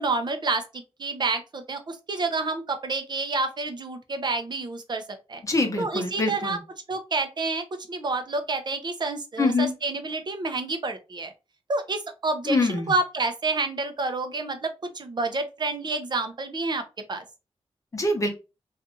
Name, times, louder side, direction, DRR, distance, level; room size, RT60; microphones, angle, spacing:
voice 1, 0.0-5.0 5.3-5.4 5.8-6.6 6.9-11.3 11.7-17.2, right 3 dB, 45° right, 0.6 m, -29 dB
voice 2, 5.4-6.6 9.4-9.7 12.5-12.9 17.9-18.3, left 2 dB, 30° left, 0.9 m, -24 dB
2.7 x 2.4 x 3.6 m
wide cardioid pair, 130°, 11 cm